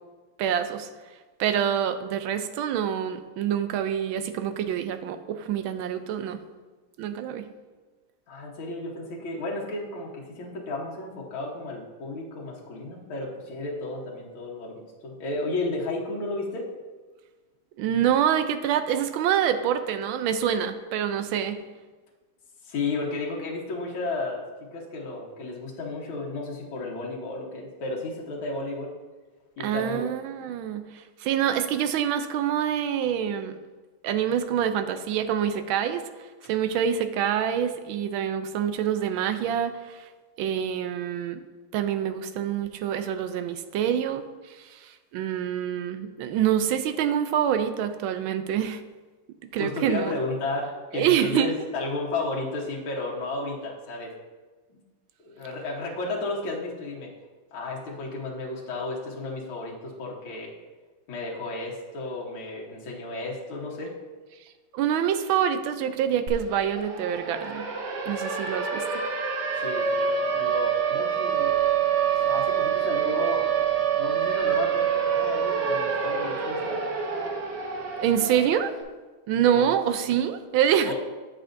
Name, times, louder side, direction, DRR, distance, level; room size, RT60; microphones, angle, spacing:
voice 1, 0.4-0.9 1.4-6.4 7.0-7.5 17.8-21.6 29.6-33.6 34.0-36.0 36.4-40.0 40.4-41.4 41.7-48.8 49.5-50.1 50.9-51.5 64.7-67.7 68.1-68.8 78.0-78.7 79.3-80.9, right 9 dB, 85° right, 9 dB, 1.4 m, -26 dB
voice 2, 8.3-16.7 22.6-24.4 24.7-28.9 29.6-30.1 49.6-54.1 54.7-54.8 55.2-57.1 57.5-60.5 61.1-63.9 69.6-71.5 72.2-73.4 74.0-76.8 78.3-78.4 79.5-79.8 80.8-80.9, left 2 dB, 90° left, -3 dB, 2.1 m, -33 dB
Siren, 66.3-66.4 66.7-78.7, right 7 dB, 65° right, 1.4 m, -26 dB
8.9 x 7.6 x 2.6 m, 1.3 s
omnidirectional pair, 2.2 m